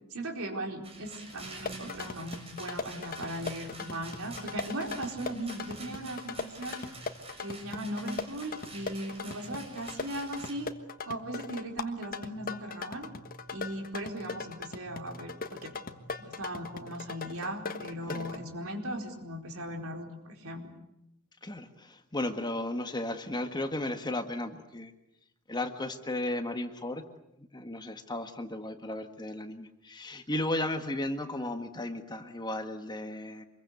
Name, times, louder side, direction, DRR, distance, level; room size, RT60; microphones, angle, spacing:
voice 1, 0.1-6.8 7.4-10.7 11.1-13.1 13.5-15.7 16.2-20.6, right 1 dB, 70° right, 3 dB, 4.5 m, -38 dB
Rattle, 0.8-10.5, right 2 dB, 25° right, 6.8 m, -48 dB
sound 1, 1.4-18.4, left 4 dB, 40° left, 1.4 m, -40 dB
voice 2, 21.4-24.9 25.5-27.0 27.4-33.5, left 1 dB, 20° left, 7 dB, 1.7 m, -35 dB
26.0 x 22.5 x 8.3 m, 0.85 s
head